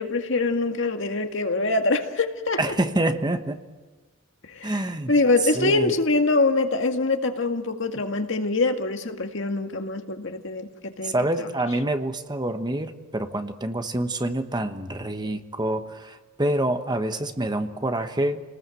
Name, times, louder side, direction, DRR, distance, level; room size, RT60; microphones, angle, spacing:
voice 1, 0.0-2.6 4.5-10.7 11.0-11.5, left 3 dB, 65° left, 5 dB, 2.0 m, -24 dB
voice 2, 2.6-3.6 4.6-5.1 5.5-5.9 11.0-18.4, right 1 dB, 20° right, 8 dB, 1.1 m, -26 dB
30.0 x 19.5 x 7.8 m, 1.3 s
head